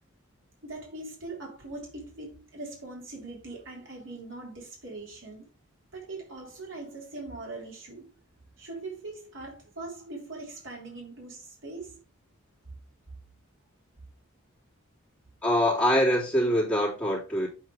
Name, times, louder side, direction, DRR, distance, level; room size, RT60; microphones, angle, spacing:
voice 1, 0.6-5.4 5.9-8.1 8.6-12.0 15.7-15.9, right 2 dB, 65° right, 3.4 m, -41 dB
voice 2, 15.4-17.5, equal, 5° left, 3.1 m, -24 dB
8.2 x 4.3 x 4.8 m
head